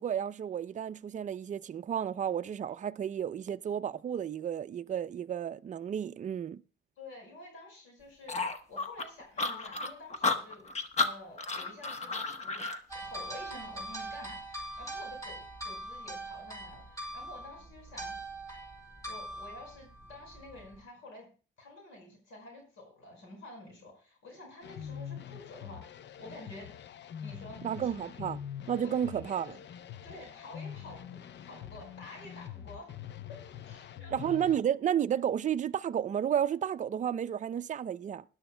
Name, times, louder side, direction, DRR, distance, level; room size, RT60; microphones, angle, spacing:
voice 1, 0.0-6.6 27.6-28.4 28.7-29.6 34.1-38.2, right 9 dB, 40° right, 0.5 m, -32 dB
voice 2, 7.0-10.7 11.0-12.1 12.4-18.2 19.1-21.3 21.6-26.7 27.2-27.9 28.1-28.2 28.8-29.5 30.0-33.0 33.3-33.4 33.6-34.3, left 2 dB, 85° left, 5.1 m, -50 dB
sound 1, 8.3-12.8, left 3 dB, 35° left, 1.1 m, -32 dB
sound 2, 12.9-20.8, right 1 dB, 15° left, 5.3 m, -42 dB
sound 3, 24.6-34.6, left 9 dB, 60° left, 0.6 m, -45 dB
20.0 x 11.5 x 2.2 m
cardioid pair, 90°, 20 cm